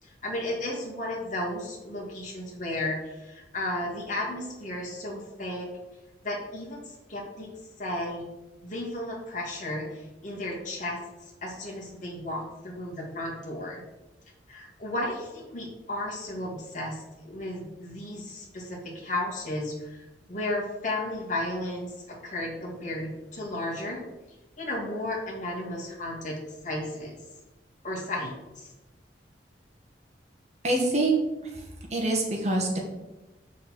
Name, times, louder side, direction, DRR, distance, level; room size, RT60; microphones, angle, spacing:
voice 1, 0.0-5.7 6.2-7.5 7.8-8.2 8.6-11.0 11.4-13.8 14.5-24.0 24.6-26.4 26.6-27.2 27.8-28.7, left 1 dB, 45° left, -2 dB, 2.4 m, -34 dB
voice 2, 30.6-31.2 31.9-32.8, right 2 dB, 40° right, 1 dB, 1.6 m, -24 dB
7.4 x 6.6 x 4.4 m, 1.0 s
head